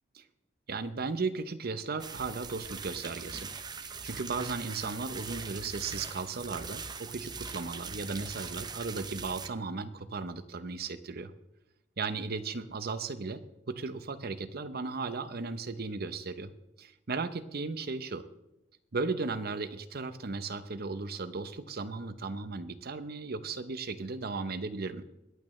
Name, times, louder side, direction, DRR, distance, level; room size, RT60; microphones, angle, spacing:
voice 1, 0.7-3.5 3.8-11.3 12.0-13.4 13.7-16.5 16.8-18.3 18.9-25.0, right 4 dB, 55° right, 11 dB, 0.8 m, -36 dB
sound 1, 2.0-9.5, right 5 dB, 20° right, 0.6 m, -41 dB
22.0 x 8.6 x 3.2 m, 0.88 s
head